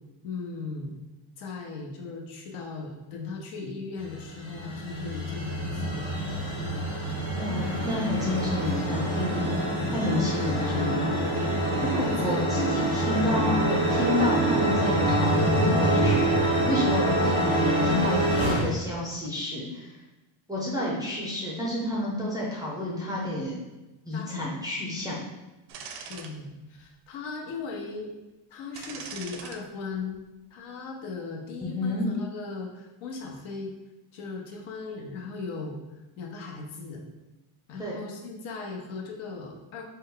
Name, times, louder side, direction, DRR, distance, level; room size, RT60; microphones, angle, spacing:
voice 1, 0.2-1.0 1.4-6.1 10.2-10.3 12.0-12.6 24.1-24.4 26.1-28.1 28.5-30.2 30.5-33.7 34.1-35.8 36.2-37.0 37.7-39.8, left 4 dB, 75° left, 1 dB, 0.9 m, -38 dB
sound 1, 4.0-18.6, right 1 dB, 10° left, 0.7 m, -26 dB
voice 2, 7.3-9.5 9.9-11.3 11.8-16.3 16.7-19.9 20.5-23.6 24.0-25.2 31.6-32.1 37.8-38.0, left 1 dB, 10° right, -5 dB, 0.4 m, -30 dB
sound 2, 25.7-26.3 26.8-26.9 28.8-29.6 30.0-30.2, right 6 dB, 85° right, 0.6 m, -41 dB
4.1 x 2.2 x 3.7 m, 1.1 s
cardioid pair, 155°, 49 cm